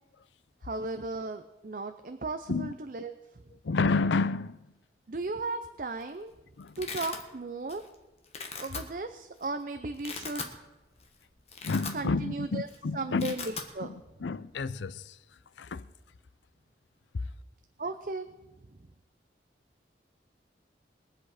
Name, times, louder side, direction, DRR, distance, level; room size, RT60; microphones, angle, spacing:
voice 1, 0.6-3.1 5.1-6.3 6.8-7.8 8.6-10.5 11.9-12.7 12.9-13.9 17.8-18.3, right 3 dB, 50° right, 0.6 m, -35 dB
voice 2, 3.6-4.7 6.6-6.8 11.6-13.3 13.8-15.2 15.6-15.9 17.1-17.2, left 4 dB, 90° left, 0.5 m, -30 dB
Domestic sounds home sounds, 5.7-6.1 6.4-7.2 7.7-7.9 8.2-8.8 9.4-9.5 9.9-10.5 11.0-11.1 11.4-12.3 12.6-12.8 13.0-13.7, left 5 dB, 35° left, 1.4 m, -39 dB
22.0 x 7.9 x 4.9 m
head